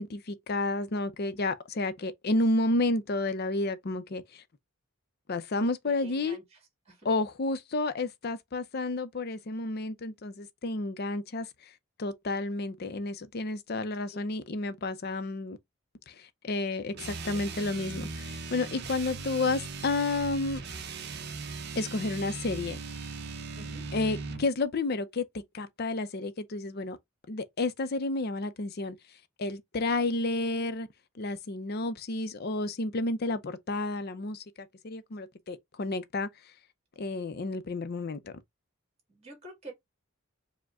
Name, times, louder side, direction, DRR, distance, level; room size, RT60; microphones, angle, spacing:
voice 1, 0.0-4.4 5.3-6.4 7.0-15.6 16.1-20.6 21.8-23.1 23.9-25.2 25.5-27.0 27.3-29.0 29.4-30.9 31.2-36.3 37.0-38.3, left 2 dB, 45° left, 0.5 m, -31 dB
voice 2, 5.8-6.6 6.9-7.1 14.1-14.3 16.9-17.5 23.6-23.9 39.1-39.7, equal, 30° right, 2.1 m, -48 dB
sound 1, 16.9-24.5, right 4 dB, 50° right, 0.7 m, -39 dB
4.9 x 2.2 x 3.5 m
head